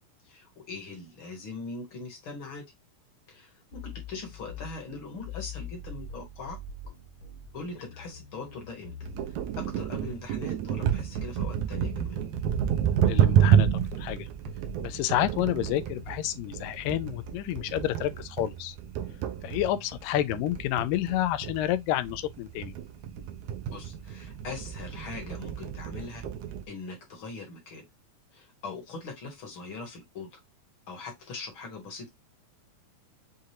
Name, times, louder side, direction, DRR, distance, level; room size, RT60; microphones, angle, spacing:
voice 1, 0.2-2.7 3.3-6.6 7.5-8.9 9.3-12.2 23.7-26.2 26.7-27.8 28.3-30.4 30.9-32.1, left 3 dB, 50° left, 1.7 m, -41 dB
sound 1, 3.7-19.7, left 3 dB, 70° left, 2.8 m, -44 dB
sound 2, 9.0-26.7, right 9 dB, 75° right, 1.9 m, -29 dB
voice 2, 13.0-14.3 14.8-18.8 19.4-22.7, left 13 dB, 85° left, 2.2 m, -29 dB
6.5 x 2.5 x 2.7 m
omnidirectional pair, 3.9 m